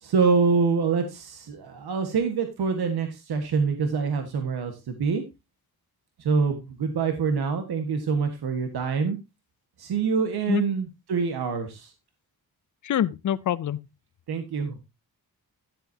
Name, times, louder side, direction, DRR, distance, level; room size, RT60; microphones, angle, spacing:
voice 1, 0.0-5.2 6.2-9.2 9.8-11.9 14.3-14.8, right 5 dB, 90° right, 1.7 m, -25 dB
voice 2, 12.8-13.8, left 10 dB, 55° left, 0.6 m, -25 dB
12.5 x 10.5 x 2.8 m
wide cardioid pair, 155°, 37 cm